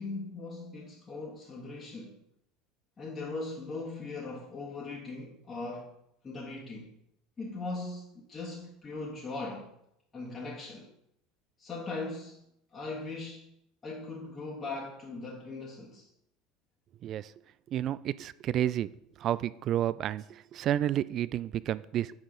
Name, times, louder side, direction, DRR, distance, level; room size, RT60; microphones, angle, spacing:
voice 1, 0.0-2.2 3.0-5.9 6.2-6.9 7.4-9.7 10.1-10.9 11.6-12.4 12.7-13.5 13.8-16.1, left 3 dB, 25° left, 1.5 m, -39 dB
voice 2, 17.7-18.9 19.2-22.1, right 11 dB, 45° right, 0.3 m, -30 dB
8.7 x 6.6 x 3.8 m
figure-of-eight pair, 70°, 0 cm